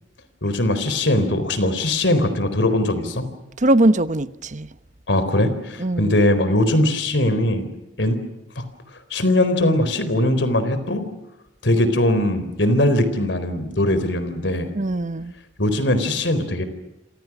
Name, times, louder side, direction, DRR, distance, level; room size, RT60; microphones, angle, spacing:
voice 1, 0.4-3.3 5.1-7.6 8.0-8.2 9.1-11.1 11.6-14.7 15.6-16.7, left 1 dB, 70° left, 4.2 m, -20 dB
voice 2, 3.6-4.7 5.8-6.2 14.7-15.3, right 1 dB, 45° right, 1.1 m, -20 dB
29.5 x 27.0 x 6.2 m
head